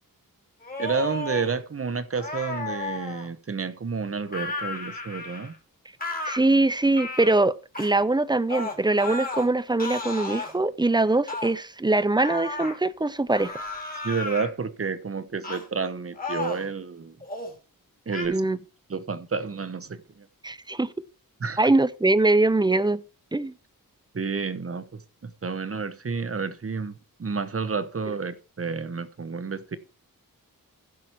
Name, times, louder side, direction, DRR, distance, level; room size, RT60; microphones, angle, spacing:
sound 1, 0.6-1.5 2.2-3.3 4.3-5.5 6.0-6.4 6.9-7.3 7.7-7.9 8.5-9.5 9.8-10.5 11.3-11.5 12.2-12.8 13.3-14.5 15.4-15.7 16.1-16.7 17.2-17.5 18.1-18.3, left 3 dB, 25° left, 2.7 m, -33 dB
voice 1, 0.8-5.5 14.0-17.2 18.1-18.4 18.9-20.3 21.4-21.6 24.1-29.8, right 5 dB, 40° right, 1.0 m, -30 dB
voice 2, 6.2-13.5 18.3-18.6 20.4-20.9 21.6-23.0 23.3-23.5, right 2 dB, 15° right, 0.5 m, -22 dB
15.5 x 6.3 x 4.4 m
wide cardioid pair, 130°, 35 cm